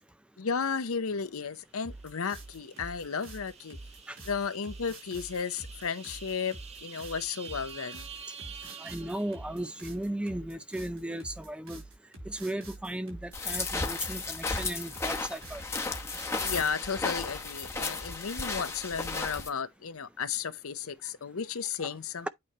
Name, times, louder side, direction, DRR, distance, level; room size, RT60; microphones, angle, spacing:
voice 1, 0.4-3.8 4.3-8.1 16.4-22.3, left 6 dB, 75° left, 0.7 m, -34 dB
sound 1, 1.8-16.7, right 2 dB, 65° right, 4.1 m, -46 dB
sound 2, 1.9-9.9, right 7 dB, 30° right, 1.4 m, -48 dB
voice 2, 8.8-11.8 12.3-15.9 21.8-22.0 22.2-22.3, right 1 dB, 5° right, 0.3 m, -36 dB
sound 3, 13.3-19.5, left 3 dB, 10° left, 0.9 m, -34 dB
8.7 x 3.1 x 4.3 m
head